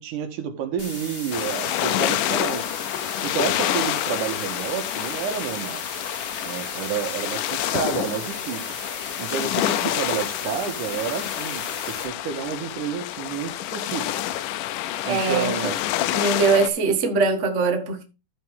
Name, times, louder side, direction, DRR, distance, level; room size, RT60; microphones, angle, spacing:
voice 1, 0.0-2.7 3.2-5.8 6.4-8.7 9.2-14.1 15.1-15.8, right 8 dB, 70° right, 2.8 m, -30 dB
sound 1, 0.8-12.0, left 2 dB, 20° left, 2.7 m, -37 dB
sound 2, 1.3-16.7, left 13 dB, 80° left, 2.1 m, -28 dB
voice 2, 15.0-15.7 16.1-18.0, right 4 dB, 50° right, 0.9 m, -22 dB
14.0 x 5.3 x 3.6 m
omnidirectional pair, 3.8 m